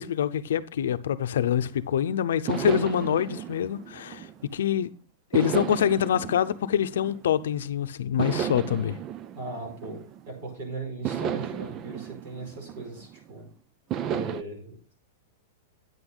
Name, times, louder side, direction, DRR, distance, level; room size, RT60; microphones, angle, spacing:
voice 1, 0.0-4.3 4.5-4.9 5.3-9.0, left 9 dB, 80° left, 0.7 m, -25 dB
sound 1, 1.5-1.9 2.5-4.7 5.3-7.6 8.2-10.4 11.0-13.3 13.9-14.4, right 9 dB, 20° right, 0.3 m, -34 dB
voice 2, 9.3-10.0 10.2-13.5 14.1-14.8, right 2 dB, 45° right, 5.1 m, -38 dB
9.3 x 8.1 x 3.9 m
supercardioid pair, 170°, 0 cm